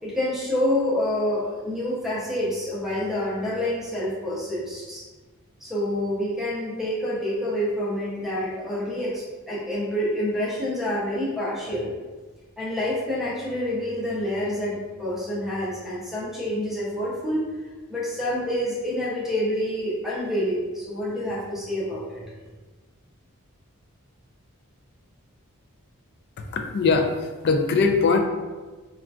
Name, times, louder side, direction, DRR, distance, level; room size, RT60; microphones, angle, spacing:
voice 1, 0.0-5.0 5.6-11.9 12.6-17.5 17.9-22.2, left 1 dB, ahead, -8 dB, 0.6 m, -27 dB
voice 2, 26.4-28.2, left 4 dB, 50° left, 4 dB, 0.3 m, -21 dB
3.7 x 2.3 x 2.3 m, 1.3 s
head